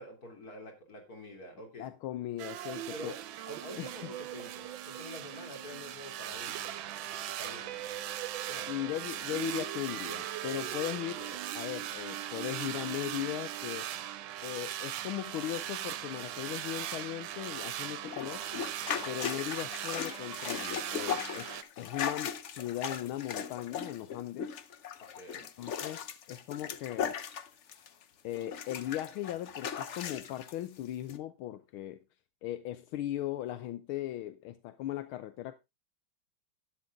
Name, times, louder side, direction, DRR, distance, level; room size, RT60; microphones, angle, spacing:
voice 1, 0.0-1.9 2.9-3.2 3.5-7.0 7.4-7.8 8.5-8.7 18.9-19.1 25.2-25.5, left 1 dB, 45° left, 3.4 m, -47 dB
voice 2, 1.8-3.1 3.8-3.9 8.7-13.9 14.4-18.5 19.1-24.6 25.6-27.1 28.2-32.0 32.4-35.5, left 13 dB, 85° left, 1.6 m, -38 dB
sound 1, 2.4-6.1 6.4-14.2, right 13 dB, 75° right, 1.4 m, -45 dB
sound 2, 2.4-21.6, right 12 dB, 90° right, 1.6 m, -40 dB
sound 3, 18.0-28.0 28.3-30.5 31.1-31.2, left 7 dB, 65° left, 0.7 m, -38 dB
11.5 x 9.2 x 3.5 m
omnidirectional pair, 2.3 m